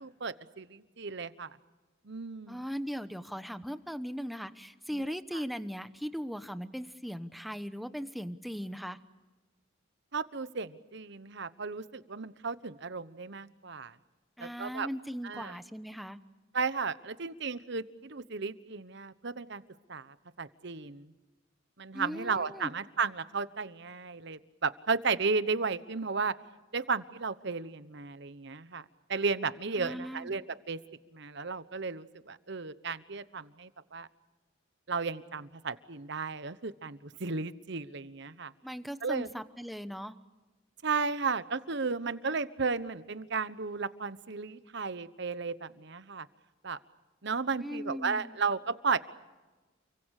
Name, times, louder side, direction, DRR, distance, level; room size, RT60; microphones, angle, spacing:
voice 1, 0.0-1.6 2.0-2.6 4.9-5.1 10.1-14.0 14.4-14.9 15.2-15.6 16.5-19.6 19.9-21.1 21.8-26.3 26.7-30.8 31.1-34.1 34.9-38.5 39.0-39.3 40.8-46.3 46.6-46.8 47.2-49.0, right 4 dB, 60° right, 14 dB, 1.1 m, -34 dB
voice 2, 2.5-9.0 14.4-16.2 21.9-22.7 29.8-30.3 38.6-40.1 47.6-48.3, equal, ahead, 10 dB, 1.0 m, -38 dB
29.5 x 24.0 x 6.6 m, 1.2 s
head